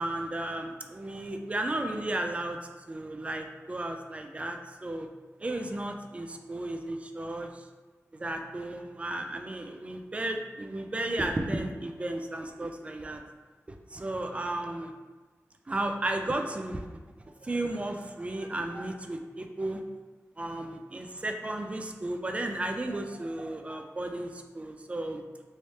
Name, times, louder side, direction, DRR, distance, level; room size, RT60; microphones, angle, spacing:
voice 1, 0.0-2.6 2.9-5.1 5.4-7.7 8.1-13.2 13.9-14.9 15.7-16.9 17.4-19.8 20.4-25.2, right 1 dB, 25° right, 4 dB, 0.3 m, -34 dB
3.1 x 3.1 x 2.7 m, 1.3 s
wide cardioid pair, 110°, 5 cm